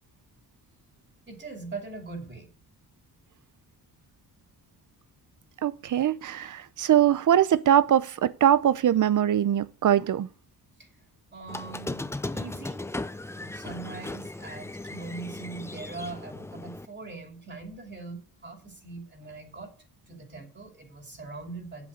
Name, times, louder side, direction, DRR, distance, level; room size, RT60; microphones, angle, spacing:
voice 1, 1.3-2.5 10.8-10.9 11.3-12.9 13.3-19.7 20.1-21.9, right 3 dB, 25° right, 2.7 m, -41 dB
voice 2, 5.6-10.3, right 10 dB, 50° right, 0.6 m, -22 dB
Squeak, 11.5-16.8, left 2 dB, 5° left, 0.4 m, -37 dB
8.1 x 7.5 x 7.5 m
cardioid pair, 110°, 39 cm